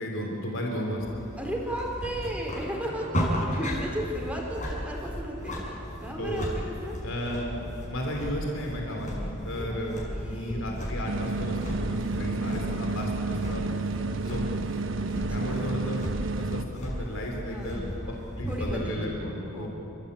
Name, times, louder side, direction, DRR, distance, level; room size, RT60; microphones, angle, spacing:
voice 1, 0.0-1.2 6.2-6.5 7.0-13.7 14.2-14.6 15.3-16.1 16.4-19.7, equal, 75° left, 1 dB, 3.4 m, -34 dB
sound 1, 1.0-18.8, equal, 40° left, 6.3 m, -35 dB
voice 2, 1.4-5.7 6.0-6.9 9.5-9.8 10.1-11.0 15.0-15.1 15.4-15.7 17.4-18.2 18.4-19.7, right 1 dB, 5° right, -1 dB, 4.2 m, -35 dB
sound 2, 11.1-16.6, right 3 dB, 65° right, 1.1 m, -31 dB
29.5 x 15.0 x 8.3 m, 2.7 s
head